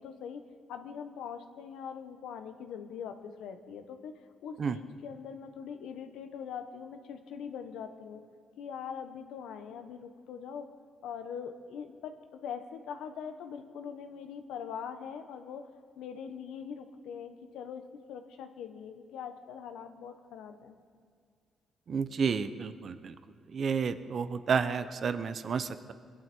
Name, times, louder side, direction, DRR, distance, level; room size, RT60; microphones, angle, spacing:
voice 1, 0.0-4.1 4.4-8.2 8.6-10.7 11.0-15.7 16.0-17.8 18.1-20.7, left 7 dB, 85° left, 7 dB, 1.2 m, -42 dB
voice 2, 21.9-23.1 23.5-25.9, right 6 dB, 50° right, 11 dB, 0.9 m, -31 dB
22.0 x 11.0 x 4.5 m, 2.1 s
cardioid pair, 90°, 0 cm